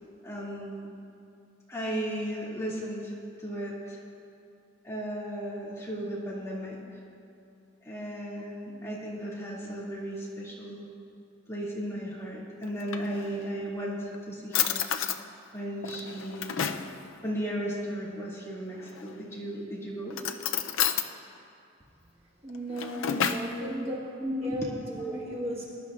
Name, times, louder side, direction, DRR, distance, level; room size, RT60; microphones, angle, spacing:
voice 1, 0.2-0.9 1.7-3.1 3.4-4.0 4.8-7.0 7.8-10.8 11.5-14.8 15.5-16.6 17.2-20.2 22.9-23.7 24.2-24.6 25.0-25.1, equal, 15° left, -7 dB, 2.4 m, -35 dB
Drawer open or close, 12.6-13.6 14.1-14.2 14.5-15.2 15.8-16.9 18.8-19.3 20.1-21.1 22.5-23.5, left 8 dB, 70° left, 0.5 m, -31 dB
voice 2, 22.4-24.0 24.4-25.6, right 1 dB, 30° right, -4 dB, 1.4 m, -36 dB
20.5 x 11.5 x 2.5 m, 2.7 s
head